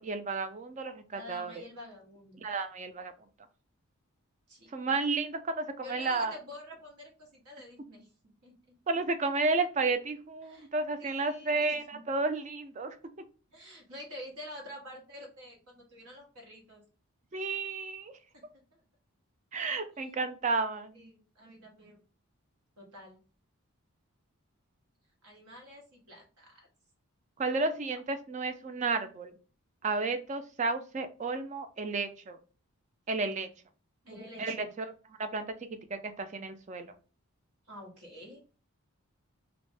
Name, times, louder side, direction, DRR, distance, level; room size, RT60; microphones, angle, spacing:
voice 1, 0.0-1.6 2.4-3.1 4.7-6.4 8.9-13.0 17.3-18.2 19.5-21.0 27.4-29.3 29.8-32.4 33.1-33.5 34.4-35.5 35.9-36.9, right 3 dB, 30° right, 9 dB, 0.3 m, -32 dB
voice 2, 1.1-2.4 4.5-4.7 5.8-8.8 10.4-10.7 11.0-12.0 13.5-16.8 18.7-18.8 20.9-22.0 22.8-23.2 25.2-26.7 34.0-34.7 37.7-38.4, equal, 85° right, 0 dB, 1.2 m, -48 dB
2.5 x 2.0 x 3.2 m, 0.36 s
head